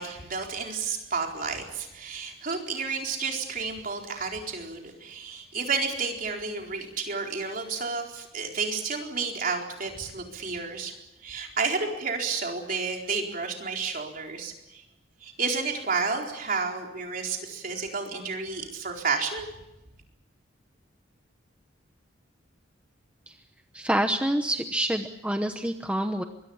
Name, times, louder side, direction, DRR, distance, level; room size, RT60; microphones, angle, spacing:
voice 1, 0.0-11.0 11.2-14.8 15.2-19.5, right 4 dB, 45° right, 1 dB, 4.2 m, -31 dB
voice 2, 23.7-26.2, right 1 dB, 5° right, 6 dB, 0.9 m, -27 dB
24.5 x 22.5 x 7.2 m, 0.92 s
head